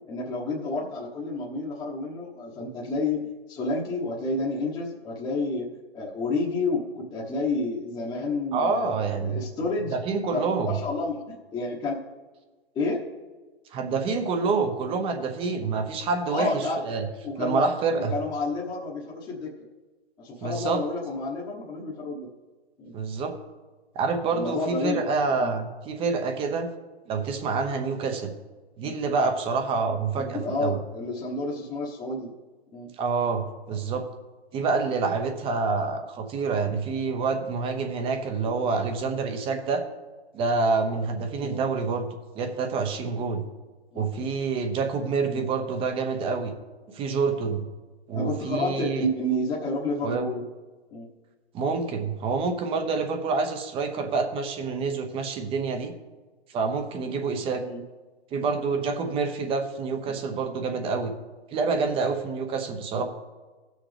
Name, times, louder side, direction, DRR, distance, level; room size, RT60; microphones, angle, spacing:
voice 1, 0.1-5.7 5.9-8.9 9.2-9.9 10.3-12.0 12.7-13.0 16.3-16.9 17.2-17.7 18.1-19.5 20.2-22.3 22.8-22.9 24.3-25.0 25.4-25.5 28.8-28.9 30.1-32.3 32.7-32.9 41.4-41.7 43.9-44.0 45.2-45.5 48.1-50.4 50.9-51.1 57.6-57.8 60.1-60.2 62.9-63.0, left 2 dB, 15° left, -3 dB, 1.2 m, -30 dB
voice 2, 8.5-9.5 9.9-10.8 13.7-17.1 17.4-18.1 20.4-20.8 22.9-23.3 23.9-26.7 27.1-28.3 28.8-30.8 33.0-34.0 34.5-39.8 40.3-42.1 42.3-43.4 43.9-46.5 46.9-47.7 48.1-49.1 50.0-50.3 51.5-55.9 56.5-57.6 58.3-61.1 61.5-63.0, right 4 dB, 15° right, 6 dB, 0.9 m, -27 dB
17.0 x 6.4 x 3.4 m, 1.3 s
hypercardioid pair, 135°, 32 cm